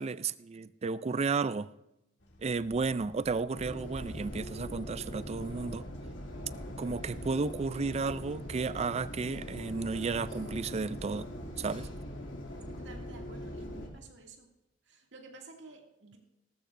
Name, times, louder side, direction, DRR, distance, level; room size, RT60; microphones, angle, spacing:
voice 1, 0.0-1.7 2.4-5.8 6.8-11.3 11.6-11.9, right 4 dB, 35° right, 0.4 m, -33 dB
sound 1, 2.2-13.3, left 1 dB, 65° left, 1.9 m, -55 dB
sound 2, 3.5-13.9, equal, 85° left, 2.7 m, -42 dB
voice 2, 12.8-14.5 14.8-16.2, right 3 dB, 65° right, 2.4 m, -51 dB
18.5 x 13.5 x 2.6 m
head